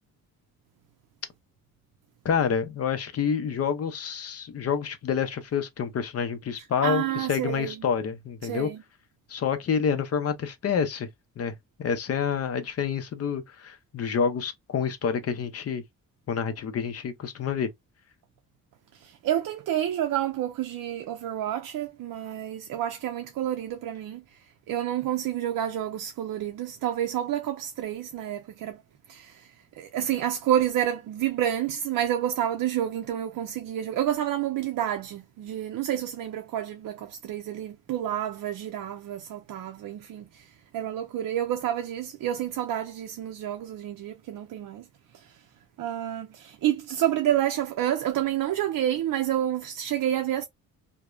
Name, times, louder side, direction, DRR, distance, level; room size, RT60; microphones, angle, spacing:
voice 1, 2.2-8.7 9.3-11.1 11.4-15.8 16.3-17.7, left 7 dB, 45° left, 0.6 m, -28 dB
voice 2, 6.8-7.7 8.4-8.8 19.0-24.2 24.7-28.8 29.1-29.3 29.8-40.2 40.7-44.8 45.8-50.5, right 11 dB, 65° right, 0.5 m, -29 dB
3.0 x 2.1 x 2.2 m
wide cardioid pair, 170°, 35 cm